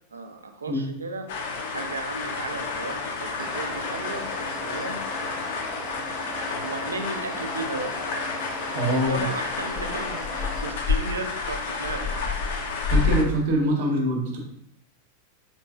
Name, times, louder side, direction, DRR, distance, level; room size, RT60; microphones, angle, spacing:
voice 1, 0.1-1.3 1.7-4.3 4.6-5.1 6.6-8.0 8.9-12.1 13.8-14.1, right 3 dB, 75° right, 6 dB, 0.4 m, -35 dB
sound 1, 1.3-13.2, left 4 dB, 55° left, 0.5 m, -30 dB
sound 2, 3.4-10.7, left 1 dB, 20° left, 0.7 m, -37 dB
voice 2, 8.7-9.2 12.8-14.4, equal, 50° right, 1 dB, 0.8 m, -24 dB
3.8 x 3.0 x 2.3 m, 0.77 s
figure-of-eight pair, 90°, 0 cm